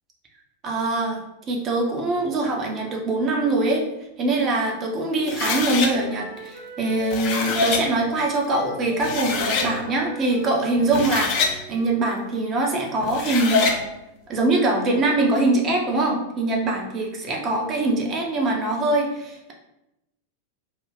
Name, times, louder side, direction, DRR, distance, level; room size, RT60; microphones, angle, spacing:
voice 1, 0.6-1.2 1.5-3.8 4.2-13.9 14.3-19.5, right 2 dB, 30° right, 0 dB, 0.5 m, -23 dB
Wind instrument woodwind instrument, 4.6-8.2 8.4-12.3, left 2 dB, 25° left, 0.8 m, -40 dB
sound 1, 5.3-5.9 6.9-7.8 8.6-8.7 9.0-9.7 10.8-11.5 13.0-13.8, left 4 dB, 45° left, 0.4 m, -24 dB
2.4 x 2.1 x 3.3 m, 0.90 s
figure-of-eight pair, 90°, 0 cm